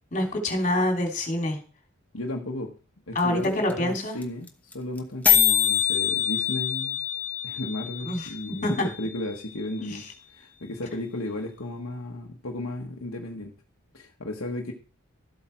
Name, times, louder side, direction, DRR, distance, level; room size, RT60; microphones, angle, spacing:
voice 1, 0.1-1.6 3.1-4.2 8.0-8.3 8.6-8.9 9.8-10.0, left 1 dB, 35° left, 3 dB, 3.1 m, -26 dB
voice 2, 2.1-2.7 3.1-4.5 4.7-7.0 7.4-10.0 10.3-13.5 13.9-14.7, left 1 dB, 65° left, 0 dB, 1.4 m, -34 dB
sound 1, 3.2-3.3 3.4-3.5 3.7-4.0 4.2-4.3 4.5-4.7 5.0-5.1 5.2-9.2, left 10 dB, 5° left, 1.2 m, -25 dB
13.0 x 8.1 x 4.5 m, 0.38 s
head